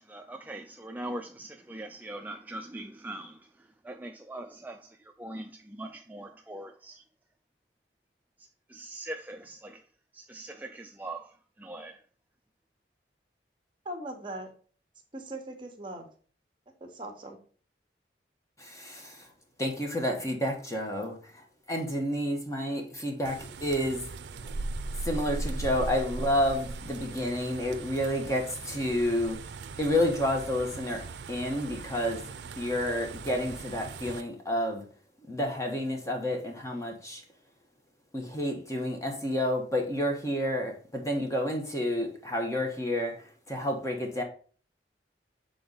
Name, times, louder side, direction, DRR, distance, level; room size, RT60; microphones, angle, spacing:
voice 1, 0.0-7.0 8.4-9.9 10.1-12.0, right 1 dB, 10° right, 0.3 m, -42 dB
voice 2, 13.8-14.5 15.1-16.1 16.8-17.4, right 1 dB, 30° right, 1.1 m, -39 dB
voice 3, 18.6-19.3 19.6-24.1 24.4-24.5 25.0-29.4 29.8-32.2 32.6-34.8 35.3-37.2 38.1-44.2, left 1 dB, 20° left, 1.1 m, -30 dB
sound 1, 23.2-34.2, right 3 dB, 75° right, 0.4 m, -39 dB
6.9 x 3.8 x 3.9 m
head